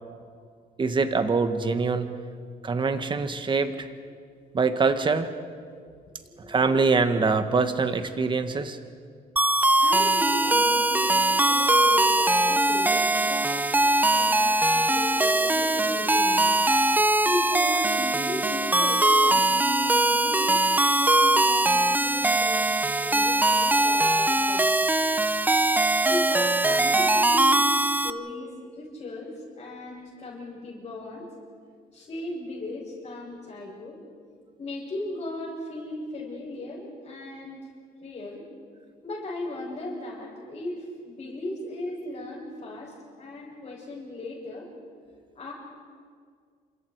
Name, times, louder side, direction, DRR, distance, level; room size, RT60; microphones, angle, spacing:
voice 1, 0.8-2.1 2.6-3.9 4.5-5.3 6.4-8.8, right 4 dB, 30° right, 9 dB, 1.7 m, -24 dB
voice 2, 6.2-6.6 8.4-8.5 9.7-16.6 17.2-24.7 26.0-28.5 28.7-31.3 31.9-34.0 34.6-37.6 38.0-38.4 39.0-44.7 45.3-45.5, left 1 dB, 35° left, -7 dB, 7.6 m, -37 dB
sound 1, 9.4-28.1, right 2 dB, 10° right, 0.7 m, -21 dB
29.0 x 26.5 x 4.8 m, 2.1 s
cardioid pair, 110°, 17 cm